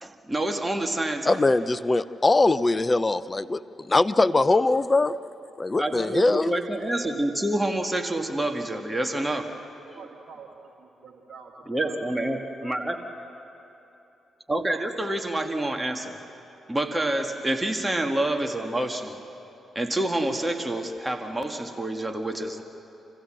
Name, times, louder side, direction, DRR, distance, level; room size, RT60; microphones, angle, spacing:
voice 1, 0.0-1.4 5.8-9.5 9.9-10.0 11.7-13.0 14.5-16.2 16.7-19.2 19.8-22.6, right 1 dB, 15° right, 5 dB, 1.8 m, -28 dB
voice 2, 1.3-5.1 5.6-6.5, left 2 dB, 30° left, 15 dB, 0.6 m, -22 dB
voice 3, 9.9-12.0 12.4-12.7, right 5 dB, 65° right, 2 dB, 1.6 m, -47 dB
27.0 x 15.5 x 7.6 m, 3.0 s
hypercardioid pair, 40°, 0 cm